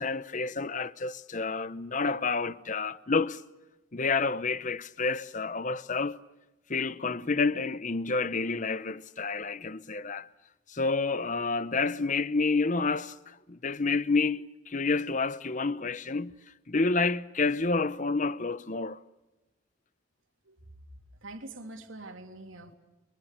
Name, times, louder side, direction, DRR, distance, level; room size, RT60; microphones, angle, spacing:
voice 1, 0.0-3.4 3.9-6.2 6.7-10.3 10.7-16.3 16.7-19.0, left 4 dB, 40° left, 0.9 m, -29 dB
voice 2, 21.2-22.7, right 2 dB, 80° right, 3.2 m, -44 dB
30.0 x 23.5 x 6.7 m
head